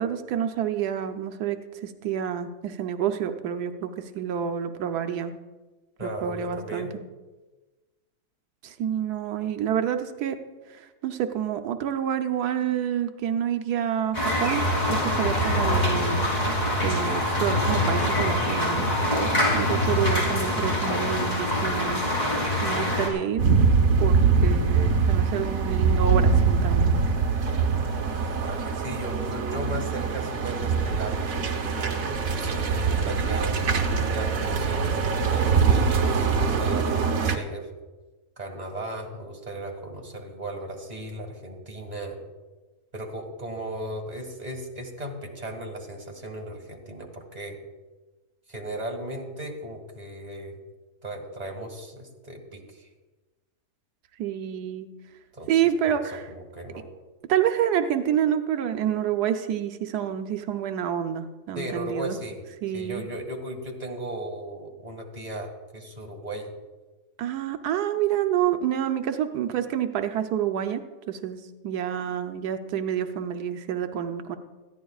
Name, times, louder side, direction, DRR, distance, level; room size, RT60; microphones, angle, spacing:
voice 1, 0.0-5.3 6.0-6.9 8.6-10.4 10.8-14.6 14.9-16.2 16.8-22.1 22.6-23.4 24.0-27.0 54.2-54.9 55.5-56.2 57.3-62.2 62.6-63.0 67.2-74.4, right 9 dB, 90° right, 7 dB, 1.3 m, -28 dB
voice 2, 6.0-6.9 28.4-33.6 34.1-37.7 38.4-42.2 42.9-47.6 48.5-50.6 51.0-52.9 55.3-55.5 56.1-56.8 61.6-62.4 62.7-66.5, right 1 dB, 25° right, 2 dB, 2.0 m, -36 dB
sound 1, 14.1-23.1, left 1 dB, 25° left, 3.4 m, -24 dB
sound 2, 23.4-37.4, right 5 dB, 65° right, 1.5 m, -23 dB
21.0 x 14.5 x 2.4 m, 1.2 s
omnidirectional pair, 1.6 m